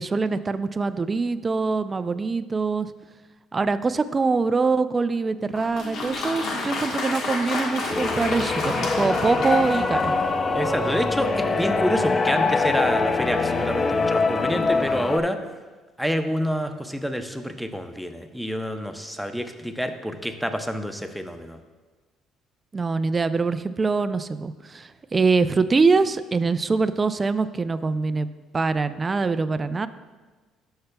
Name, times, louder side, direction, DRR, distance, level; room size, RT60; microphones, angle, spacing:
voice 1, 0.0-2.9 3.5-10.1 22.7-28.3 28.5-29.9, right 4 dB, 30° right, 13 dB, 0.4 m, -24 dB
Applause, 5.5-10.4, left 3 dB, 65° left, 1.3 m, -30 dB
sound 1, 7.9-15.2, left 3 dB, 35° left, 0.5 m, -24 dB
voice 2, 10.5-15.4 16.0-21.6, equal, ahead, 7 dB, 0.7 m, -28 dB
12.5 x 5.6 x 2.3 m, 1.3 s
supercardioid pair, 80°, 0 cm